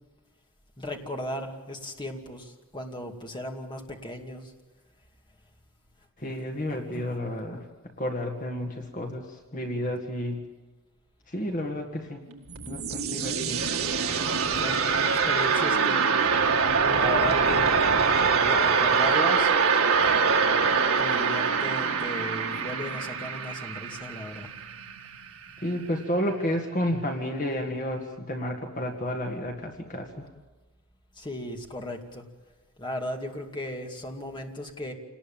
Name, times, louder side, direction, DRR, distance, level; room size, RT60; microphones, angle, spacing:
voice 1, 0.8-4.5 6.7-7.1 14.5-16.1 16.9-17.8 18.4-19.5 21.0-24.5 31.2-32.2 32.8-34.9, left 1 dB, 20° left, 2 dB, 2.4 m, -36 dB
voice 2, 6.2-7.6 8.0-9.2 9.5-10.5 11.3-12.2 12.7-13.6 15.5-15.6 25.6-30.1, left 1 dB, 35° left, 2 dB, 2.0 m, -31 dB
sound 1, 12.3-25.2, right 5 dB, 70° right, 2.0 m, -24 dB
28.0 x 19.5 x 9.0 m, 1.2 s
head